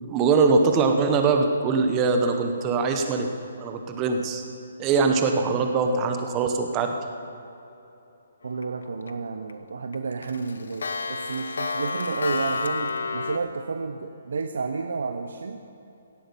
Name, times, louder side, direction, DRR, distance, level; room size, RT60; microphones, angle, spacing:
voice 1, 0.0-3.3 3.6-4.4 4.8-6.9, right 4 dB, 15° right, 5 dB, 0.9 m, -22 dB
voice 2, 8.4-15.6, right 4 dB, 75° right, 6 dB, 0.8 m, -31 dB
Clock, 8.6-9.1 9.5-9.6 9.9-13.4, left 4 dB, 80° left, 0.9 m, -30 dB
16.5 x 8.6 x 7.0 m, 2.9 s
hypercardioid pair, 175°, 0 cm